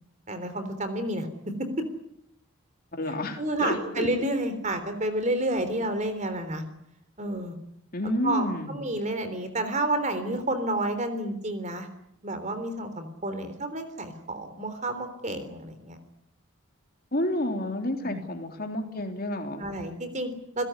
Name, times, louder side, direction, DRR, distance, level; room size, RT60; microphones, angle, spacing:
voice 1, 0.3-1.7 3.4-6.6 7.2-7.6 8.2-11.9 12.2-16.0 18.0-18.2 19.6-20.7, right 1 dB, 35° right, 10 dB, 3.5 m, -30 dB
voice 2, 2.9-4.1 7.9-8.8 17.1-19.7, left 1 dB, 40° left, 5 dB, 3.4 m, -30 dB
28.0 x 16.5 x 9.8 m, 0.79 s
head